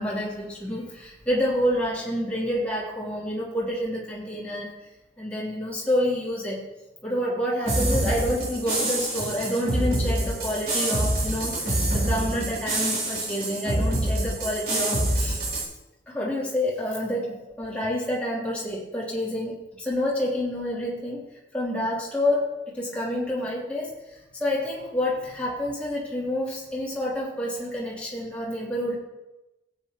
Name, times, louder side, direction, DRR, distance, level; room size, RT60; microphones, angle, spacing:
voice 1, 0.0-4.7 5.2-6.6 7.0-15.4 16.1-21.2 21.5-28.9, left 1 dB, 10° left, -7 dB, 3.2 m, -28 dB
sound 1, 7.6-15.6, right 1 dB, 55° right, 3.8 m, -26 dB
16.5 x 8.7 x 3.0 m, 1.0 s
head